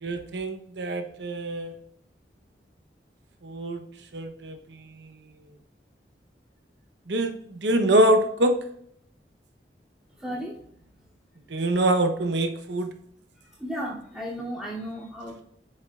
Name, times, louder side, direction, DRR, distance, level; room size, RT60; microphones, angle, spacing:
voice 1, 0.0-1.8 3.4-3.8 4.1-4.6 7.1-8.6 11.5-12.9, right 1 dB, 75° right, 6 dB, 0.9 m, -24 dB
voice 2, 10.2-10.6 13.6-15.4, equal, 5° right, -7 dB, 2.6 m, -34 dB
8.8 x 6.5 x 2.4 m, 0.68 s
head